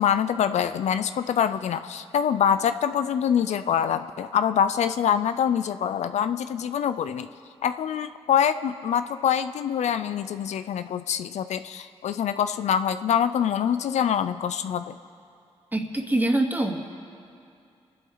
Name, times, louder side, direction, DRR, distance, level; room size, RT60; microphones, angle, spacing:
voice 1, 0.0-7.3 7.6-14.9, left 8 dB, 80° left, 11 dB, 0.5 m, -25 dB
voice 2, 15.7-16.8, right 1 dB, 15° right, 1 dB, 2.4 m, -24 dB
28.0 x 12.0 x 4.0 m, 2.5 s
cardioid pair, 60°, 12 cm